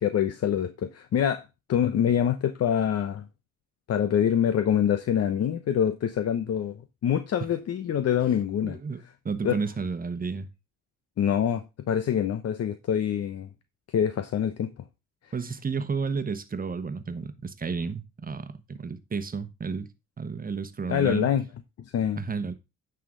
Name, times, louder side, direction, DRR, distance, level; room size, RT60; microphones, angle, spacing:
voice 1, 0.0-1.4 1.7-3.2 3.9-6.8 7.0-8.8 9.4-9.6 11.2-13.5 13.9-14.7 20.9-21.5 21.9-22.2, left 9 dB, 55° left, 0.8 m, -25 dB
voice 2, 8.6-10.5 15.3-19.9 20.2-21.3 22.2-22.5, right 5 dB, 30° right, 1.2 m, -32 dB
9.4 x 5.8 x 3.7 m
cardioid pair, 90°, 30 cm